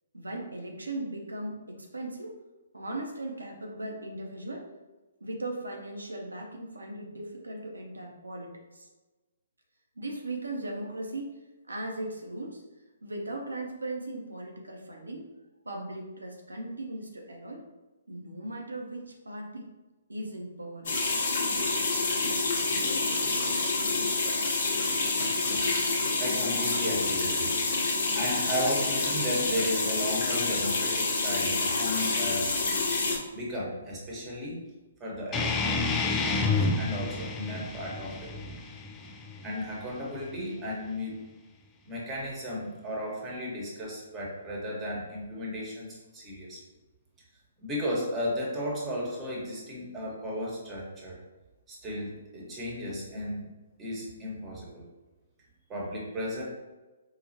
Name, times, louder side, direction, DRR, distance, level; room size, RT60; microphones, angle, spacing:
voice 1, 0.1-2.3 2.7-4.7 5.2-8.9 10.0-11.3 11.7-12.6 13.0-15.3 15.6-17.6 18.1-19.7 20.1-20.9, right 1 dB, 80° right, 0 dB, 0.8 m, -38 dB
Water running down the bath tub (easy), 20.9-33.2, left 3 dB, 55° left, 0.8 m, -28 dB
voice 2, 25.5-32.5 33.3-34.6 35.0-38.4 39.4-41.3 41.8-46.6 47.6-51.1 51.7-53.5 53.8-54.9 55.7-56.4, equal, 15° right, -5 dB, 1.2 m, -35 dB
sound 1, 35.3-40.4, left 3 dB, 15° left, 0.4 m, -30 dB
4.7 x 2.4 x 2.7 m, 1.1 s
figure-of-eight pair, 130°, 0 cm